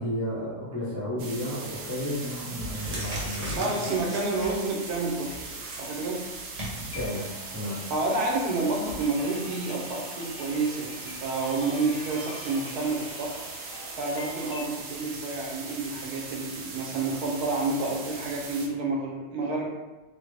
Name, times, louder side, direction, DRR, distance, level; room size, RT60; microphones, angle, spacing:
voice 1, 0.0-3.9 6.8-7.8, equal, 15° left, -10 dB, 0.6 m, -33 dB
sound 1, 1.2-18.7, right 3 dB, 65° right, 0.9 m, -40 dB
sound 2, 1.9-2.0 2.4-8.9, equal, 35° right, 0.6 m, -39 dB
voice 2, 3.5-6.2 7.9-13.3 14.0-19.7, right 3 dB, 80° right, -1 dB, 1.2 m, -29 dB
sound 3, 6.9-14.6, left 2 dB, 65° left, 1.1 m, -46 dB
3.6 x 2.0 x 3.3 m, 1.1 s
omnidirectional pair, 1.7 m